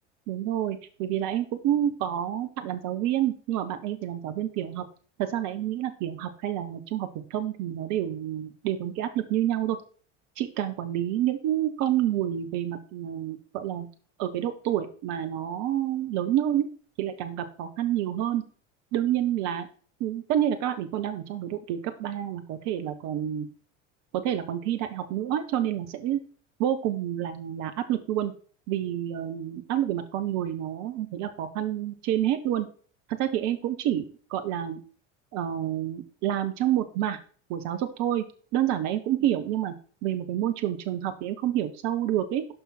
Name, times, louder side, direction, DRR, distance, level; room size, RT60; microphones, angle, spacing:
voice 1, 0.3-4.9 5.2-9.8 10.4-13.9 14.2-16.6 17.0-18.4 18.9-19.7 20.0-23.5 24.1-26.2 26.6-28.3 28.7-32.7 33.1-34.8 35.3-37.2 37.5-38.2 38.5-39.7 40.0-42.4, right 11 dB, 45° right, 8 dB, 1.1 m, -28 dB
12.0 x 5.6 x 4.3 m, 0.43 s
figure-of-eight pair, 70°, 38 cm